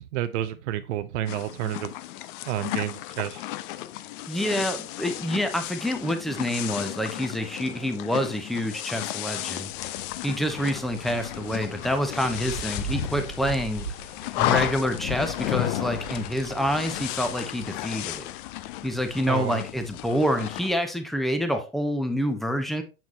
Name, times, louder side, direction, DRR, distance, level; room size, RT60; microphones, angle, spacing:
voice 1, 0.0-1.9 2.5-3.4 19.3-19.6, right 12 dB, 55° right, 0.5 m, -30 dB
sound 1, 1.3-20.7, left 15 dB, 40° left, 0.5 m, -33 dB
voice 2, 4.3-9.7 10.2-13.9 14.4-18.3 18.8-22.8, equal, ahead, 0.7 m, -27 dB
Wind, 10.5-17.0, right 3 dB, 60° left, 3.0 m, -40 dB
7.2 x 6.0 x 2.8 m
hypercardioid pair, 105°, 43 cm